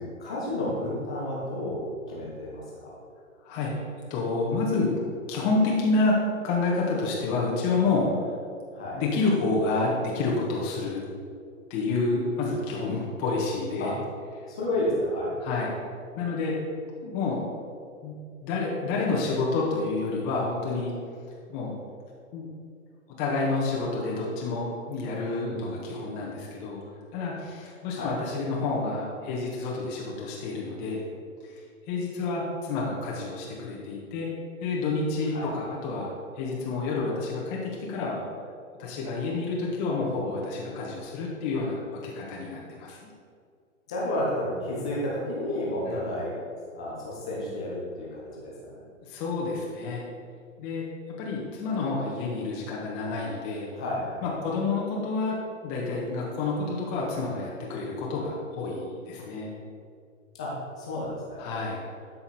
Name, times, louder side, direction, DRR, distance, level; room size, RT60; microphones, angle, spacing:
voice 1, 0.0-2.9 8.7-9.0 13.8-13.9 14.5-15.3 25.4-25.6 27.9-28.1 35.3-35.5 43.9-46.3 46.7-48.8 53.7-54.2 60.4-61.5, left 1 dB, 5° left, -5 dB, 0.3 m, -31 dB
voice 2, 4.1-4.9 5.3-6.2 6.4-8.3 8.9-11.0 11.7-13.9 15.4-15.7 16.1-16.6 17.0-17.4 18.0-20.9 21.5-21.8 22.3-22.5 23.2-26.8 27.1-31.0 31.4-31.6 31.9-34.3 34.6-36.1 36.4-38.2 38.8-43.0 45.9-46.0 49.0-50.0 50.6-50.8 51.2-53.7 54.2-55.4 55.6-59.5 61.4-61.8, left 3 dB, 25° left, -3 dB, 1.5 m, -29 dB
12.5 x 5.8 x 4.2 m, 2.3 s
figure-of-eight pair, 115°, 39 cm